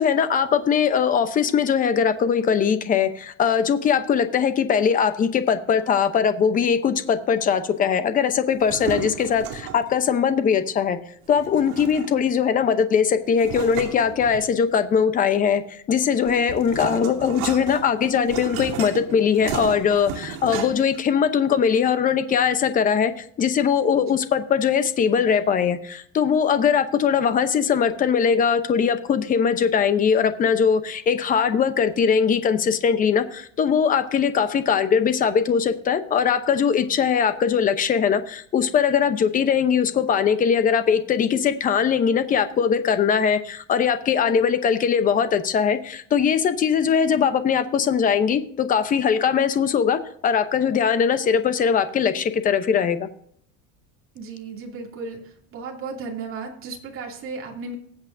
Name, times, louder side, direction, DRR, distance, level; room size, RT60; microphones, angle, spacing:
voice 1, 0.0-11.0 11.3-53.1, left 7 dB, 20° left, 11 dB, 0.7 m, -21 dB
sound 1, 8.5-9.9 11.4-12.4 13.4-14.8 15.9-21.0, right 8 dB, 70° right, 2.7 m, -34 dB
voice 2, 54.1-57.8, right 4 dB, 30° right, 0 dB, 2.7 m, -35 dB
19.5 x 8.2 x 2.6 m, 0.64 s
cardioid pair, 155°, 40 cm